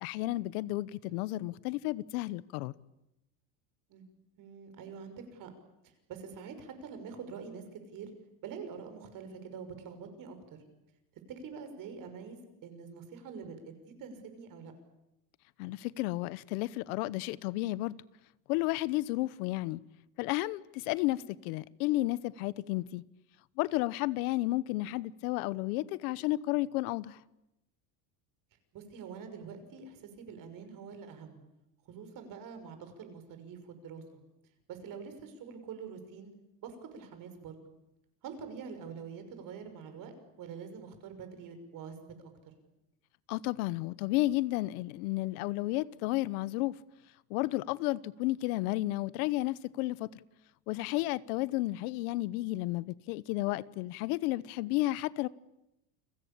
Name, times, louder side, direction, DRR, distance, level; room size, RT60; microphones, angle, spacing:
voice 1, 0.0-2.7 15.6-18.0 18.5-19.8 20.2-23.0 23.6-27.2 43.3-46.8 47.3-50.1 50.7-55.3, left 18 dB, 85° left, 1.0 m, -32 dB
voice 2, 4.4-5.5 5.8-8.1 8.4-10.6 11.4-14.7 21.0-21.2 28.7-31.4 31.8-34.2 34.7-36.3 36.6-37.6 38.2-42.3, right 6 dB, 45° right, 6.0 m, -45 dB
29.5 x 22.5 x 8.7 m
cardioid pair, 145°, 44 cm